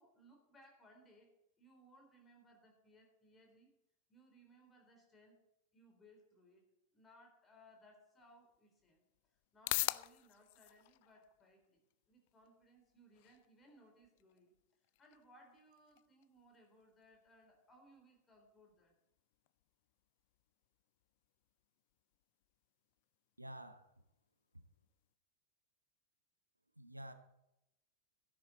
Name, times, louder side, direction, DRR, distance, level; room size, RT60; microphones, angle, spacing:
voice 1, 0.0-3.7 4.1-5.4 5.7-6.7 6.9-9.0 9.5-11.8 12.1-14.5 14.8-18.9, equal, 20° left, 3.6 m, -65 dB
sound 1, 8.2-25.1, left 20 dB, 50° left, 0.3 m, -49 dB
voice 2, 23.4-23.9 24.5-24.6 26.8-27.1, right 1 dB, 85° right, 0.9 m, -50 dB
13.0 x 10.5 x 4.1 m
figure-of-eight pair, 90°, 0 cm